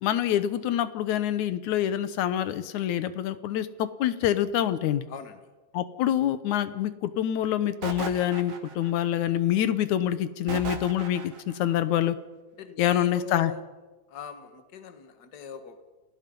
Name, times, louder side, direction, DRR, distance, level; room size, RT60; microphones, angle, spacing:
voice 1, 0.0-5.0 5.7-12.2 12.8-13.5, left 11 dB, 75° left, 13 dB, 2.4 m, -26 dB
voice 2, 5.1-5.4 12.6-13.6 14.1-15.8, left 6 dB, 40° left, 8 dB, 1.9 m, -40 dB
sound 1, 7.8-9.1 10.5-11.6, right 5 dB, 55° right, 3.1 m, -36 dB
30.0 x 18.5 x 5.4 m, 1.2 s
omnidirectional pair, 3.5 m